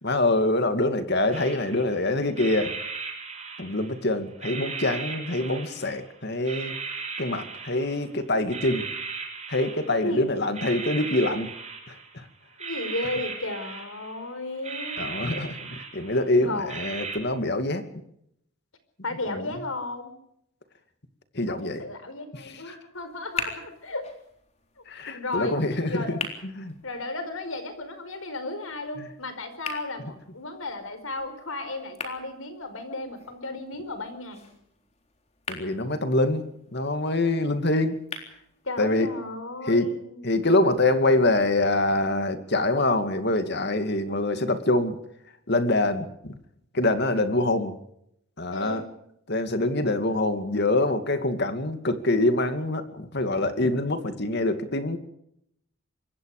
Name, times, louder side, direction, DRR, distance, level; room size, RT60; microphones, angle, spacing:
voice 1, 0.0-2.8 3.6-6.7 7.2-8.9 9.5-11.5 11.9-12.2 15.0-17.8 19.3-19.5 21.3-21.8 22.4-22.6 24.9-26.7 29.0-29.1 35.5-36.4 36.7-38.0 38.8-39.1 39.7-39.9 40.2-45.0 45.5-46.4 46.7-47.7 48.4-48.8 49.3-55.0, left 2 dB, 50° left, 8 dB, 2.5 m, -25 dB
sound 1, 1.3-2.0 2.4-4.0 4.4-6.1 6.4-8.1 8.5-10.2 10.5-12.2 12.6-14.3 14.6-16.3 16.7-17.2, right 4 dB, 30° right, 6.0 m, -37 dB
voice 2, 12.6-15.0 16.3-16.7 19.0-20.1 21.5-24.1 25.1-25.6 25.8-26.1 26.8-34.5 38.6-40.3 48.5-48.9, left 2 dB, 75° left, 10 dB, 4.9 m, -34 dB
sound 2, 22.9-38.9, left 4 dB, 30° left, 3.9 m, -42 dB
26.0 x 22.0 x 5.1 m, 0.74 s
head